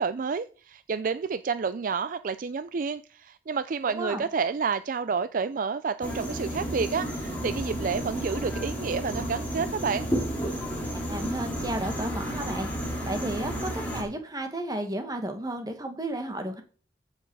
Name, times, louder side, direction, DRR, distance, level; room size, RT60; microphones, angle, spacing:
voice 1, 0.0-10.1, right 5 dB, 50° right, 12 dB, 0.4 m, -29 dB
voice 2, 3.9-4.3 10.9-12.7 13.1-16.6, right 1 dB, 20° right, 6 dB, 1.6 m, -33 dB
sound 1, 6.0-14.0, equal, 10° left, 3.4 m, -32 dB
14.5 x 5.7 x 4.7 m, 0.40 s
head